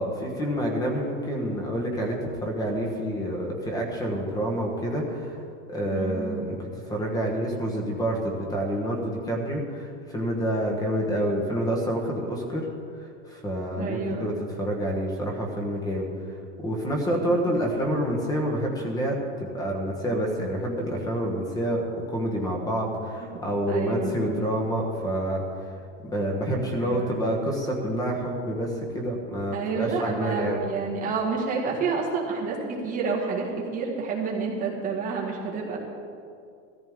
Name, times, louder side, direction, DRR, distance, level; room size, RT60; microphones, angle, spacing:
voice 1, 0.0-5.4 5.7-6.6 6.9-12.7 13.0-16.1 16.6-21.8 22.1-25.7 26.0-30.6, equal, 10° left, 0 dB, 1.2 m, -28 dB
voice 2, 5.9-6.3 11.0-11.4 13.8-14.4 17.1-17.4 23.2-23.3 23.7-24.4 26.8-27.1 29.5-35.8, right 4 dB, 20° right, -3 dB, 1.9 m, -29 dB
16.0 x 14.0 x 3.7 m, 2.4 s
supercardioid pair, 175°, 37 cm